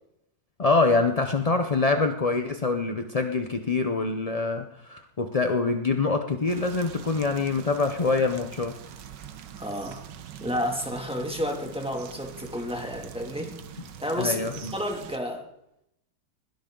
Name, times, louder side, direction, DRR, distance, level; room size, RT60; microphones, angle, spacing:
voice 1, 0.6-8.8 14.2-14.7, left 3 dB, 45° left, 6 dB, 0.5 m, -25 dB
sound 1, 6.5-15.2, right 9 dB, 80° right, 1.6 m, -44 dB
voice 2, 9.6-10.0 10.4-13.5 14.0-15.5, equal, 5° right, 2 dB, 2.3 m, -31 dB
21.0 x 17.0 x 3.9 m, 0.83 s
omnidirectional pair, 1.9 m